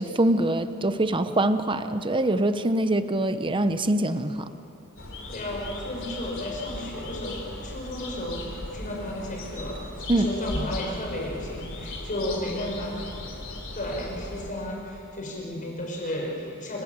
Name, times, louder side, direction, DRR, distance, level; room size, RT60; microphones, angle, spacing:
voice 1, 0.0-4.5 10.1-10.3, right 1 dB, 20° right, 10 dB, 0.8 m, -24 dB
sound 1, 5.0-14.5, left 2 dB, 60° left, 3.7 m, -37 dB
voice 2, 5.3-9.8 10.1-12.9 13.5-16.8, left 1 dB, 35° left, -1 dB, 6.1 m, -33 dB
29.5 x 17.5 x 8.9 m, 2.8 s
head